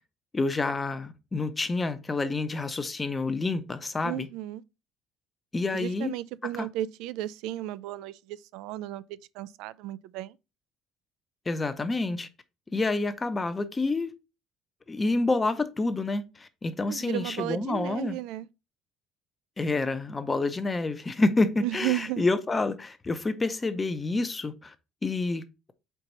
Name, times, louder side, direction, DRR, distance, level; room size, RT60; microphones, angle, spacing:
voice 1, 0.3-4.3 5.5-6.1 6.6-6.7 11.5-12.3 12.7-14.1 14.9-18.2 19.6-24.7 25.0-25.4, left 3 dB, 15° left, 0.6 m, -28 dB
voice 2, 4.0-4.6 5.7-10.4 16.8-18.5 21.6-22.2, right 15 dB, 80° right, 0.4 m, -34 dB
4.6 x 3.9 x 5.4 m
cardioid pair, 155°, 0 cm